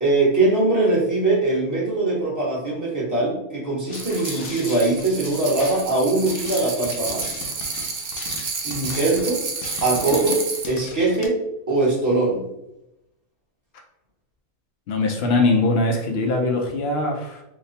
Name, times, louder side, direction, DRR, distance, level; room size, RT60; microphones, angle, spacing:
voice 1, 0.0-7.4 8.6-9.4 9.8-11.4 11.7-12.4, right 2 dB, 15° right, -6 dB, 1.0 m, -21 dB
sound 1, 3.9-11.3, left 4 dB, 80° left, 1.0 m, -37 dB
sound 2, 3.9-10.7, right 4 dB, 60° right, 0.6 m, -31 dB
voice 2, 14.9-17.4, left 2 dB, 55° left, 2 dB, 0.7 m, -21 dB
2.9 x 2.2 x 4.1 m, 0.84 s
omnidirectional pair, 1.5 m